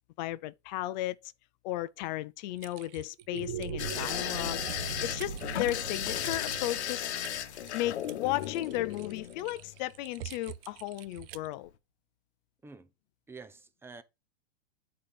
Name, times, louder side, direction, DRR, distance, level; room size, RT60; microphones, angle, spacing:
voice 1, 0.2-1.2 1.6-4.6 5.0-7.1 7.7-11.7, left 15 dB, 40° left, 0.6 m, -34 dB
Typing, 2.6-11.5, right 13 dB, 55° right, 0.6 m, -48 dB
sound 1, 3.2-9.6, right 5 dB, 90° right, 1.9 m, -41 dB
sound 2, 3.8-9.8 11.1-11.4 11.7-11.8, left 11 dB, 75° left, 1.1 m, -36 dB
voice 2, 13.3-14.0, right 4 dB, 5° right, 0.6 m, -48 dB
8.6 x 4.1 x 5.1 m
hypercardioid pair, 135°, 34 cm